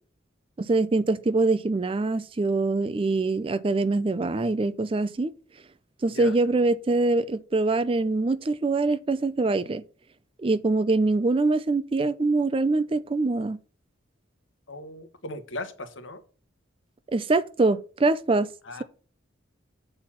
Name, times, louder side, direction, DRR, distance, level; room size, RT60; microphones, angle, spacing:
voice 1, 0.6-5.3 6.0-9.8 10.4-13.6 17.1-18.5, right 3 dB, 25° right, 0.4 m, -24 dB
voice 2, 14.7-16.2 18.6-18.8, left 2 dB, 75° left, 1.2 m, -37 dB
7.7 x 4.2 x 5.8 m
head